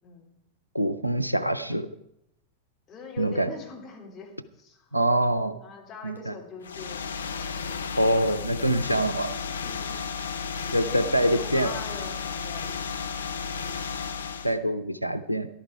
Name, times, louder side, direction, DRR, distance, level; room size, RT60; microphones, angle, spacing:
voice 1, 0.0-0.3 2.9-7.5 9.5-10.0 10.4-12.8, left 5 dB, 25° left, -1 dB, 3.7 m, -43 dB
voice 2, 0.7-1.9 3.2-3.5 4.9-5.6 6.0-6.3 8.0-9.3 10.7-11.7 14.4-15.5, right 1 dB, 90° right, 12 dB, 0.6 m, -25 dB
sound 1, 6.6-14.6, left 6 dB, 70° left, 0.7 m, -33 dB
13.5 x 11.5 x 4.8 m, 0.79 s
figure-of-eight pair, 90°, 0 cm